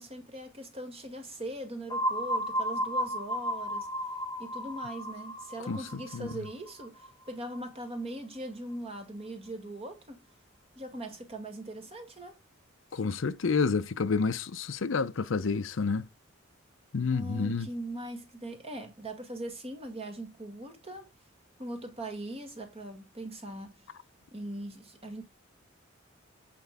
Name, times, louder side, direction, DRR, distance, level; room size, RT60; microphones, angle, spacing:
voice 1, 0.0-3.9 4.4-10.2 10.7-12.4 17.1-21.1 21.6-23.9 24.3-25.2, right 1 dB, 30° right, 1.8 m, -40 dB
sound 1, 1.9-7.6, equal, 20° left, 0.6 m, -34 dB
voice 2, 12.9-16.1 16.9-17.7, left 4 dB, 70° left, 0.6 m, -29 dB
7.9 x 4.5 x 3.4 m
head